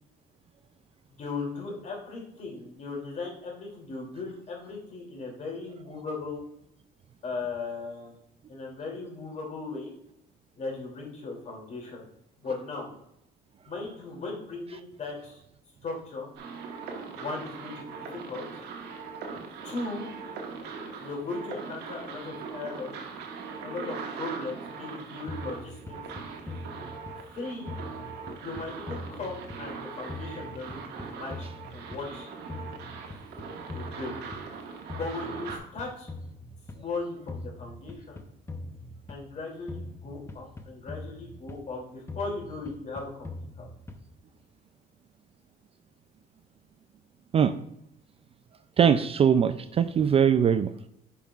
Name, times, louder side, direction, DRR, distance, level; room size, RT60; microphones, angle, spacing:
voice 1, 1.1-6.4 7.2-8.1 8.5-9.9 10.6-12.0 12.4-12.9 13.7-15.4 15.8-16.3 17.1-18.5 19.6-20.1 21.0-22.9 23.6-26.0 27.3-27.8 28.4-32.3 33.6-34.2 34.7-36.1 36.7-38.2 39.1-43.3 43.6-43.7 48.8-49.0, left 3 dB, 45° left, -1 dB, 2.8 m, -37 dB
sound 1, 16.4-35.6, right 5 dB, 80° right, 1.3 m, -40 dB
sound 2, 25.3-27.4 27.7-29.8 30.1-32.2 32.5-34.6 34.9-36.9 37.3-39.4 39.7-41.8 42.1-44.2, left 2 dB, 15° left, 0.7 m, -42 dB
voice 2, 48.8-50.9, right 8 dB, 35° right, 11 dB, 0.3 m, -22 dB
9.9 x 5.5 x 2.4 m, 0.76 s
cardioid pair, 110°, 17 cm